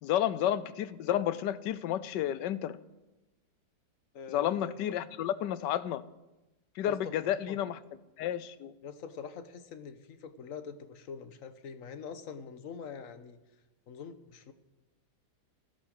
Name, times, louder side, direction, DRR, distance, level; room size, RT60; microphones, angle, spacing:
voice 1, 0.0-2.8 4.3-6.0 6.8-7.8 8.2-8.7, left 11 dB, 85° left, 16 dB, 1.3 m, -31 dB
voice 2, 4.1-4.7 6.8-7.6 8.8-13.4 13.9-14.5, left 6 dB, 55° left, 10 dB, 1.3 m, -44 dB
15.0 x 11.0 x 6.4 m, 1.0 s
omnidirectional pair, 1.8 m